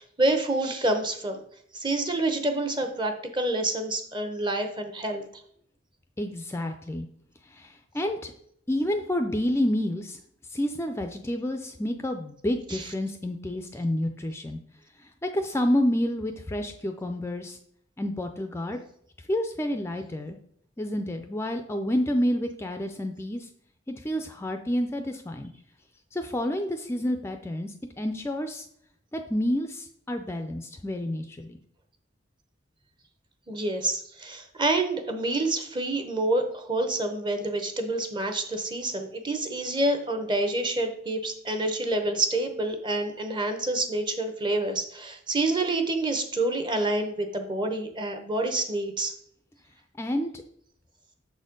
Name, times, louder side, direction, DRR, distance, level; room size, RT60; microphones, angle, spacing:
voice 1, 0.0-1.4 1.7-5.4 12.7-12.8 33.5-49.1, right 2 dB, 25° right, 6 dB, 0.9 m, -28 dB
voice 2, 6.2-7.1 7.4-8.3 8.7-10.2 10.5-14.6 15.0-17.6 18.0-18.8 19.3-20.4 20.8-23.5 23.9-25.5 26.1-28.7 29.1-31.6 50.0-50.3, left 1 dB, 15° left, 6 dB, 0.4 m, -29 dB
6.6 x 4.2 x 5.1 m, 0.67 s
head